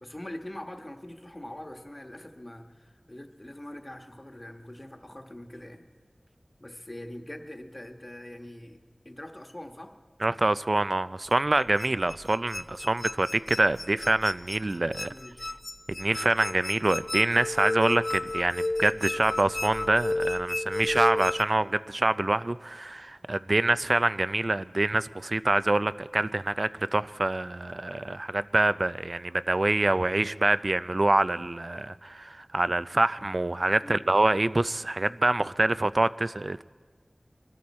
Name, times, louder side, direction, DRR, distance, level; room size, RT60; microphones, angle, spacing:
voice 1, 0.0-5.9 6.6-8.8 9.0-9.9 15.1-15.4 33.8-34.1, left 1 dB, 30° left, 1.3 m, -43 dB
voice 2, 10.2-15.1 15.9-36.6, right 2 dB, 55° right, 0.4 m, -26 dB
sound 1, 11.3-21.4, left 2 dB, 50° left, 0.8 m, -32 dB
23.5 x 13.0 x 4.3 m
wide cardioid pair, 40°, 0 cm